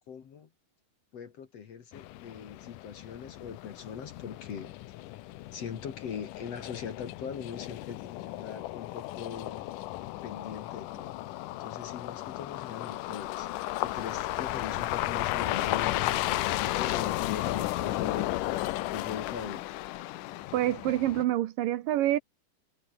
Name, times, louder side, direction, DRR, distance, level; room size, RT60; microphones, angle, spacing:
voice 1, 0.1-0.5 1.1-4.7 5.5-9.7 10.2-11.2 11.6-13.5 13.8-18.4 18.9-19.7, left 7 dB, 50° left, 2.5 m, -41 dB
sound 1, 1.9-21.3, left 16 dB, 75° left, 2.1 m, -34 dB
voice 2, 20.5-22.2, right 14 dB, 75° right, 2.4 m, -27 dB
omnidirectional pair, 4.3 m